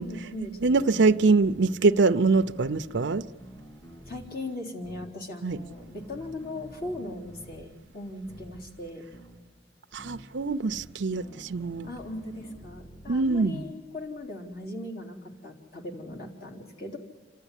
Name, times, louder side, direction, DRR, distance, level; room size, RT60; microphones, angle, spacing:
voice 1, 0.0-1.1 4.1-9.0 11.8-17.0, left 1 dB, 50° left, 3.6 m, -39 dB
sound 1, 0.6-0.8 1.4-1.7 2.3-4.2 4.8-5.1 5.7-7.7 8.3-8.5 9.1-9.4 10.0-10.2 10.7-13.5, equal, 25° left, 4.0 m, -48 dB
voice 2, 0.6-3.2 5.4-5.6 9.9-11.9 13.1-13.6, right 3 dB, 65° right, 0.6 m, -23 dB
29.0 x 13.0 x 9.9 m
head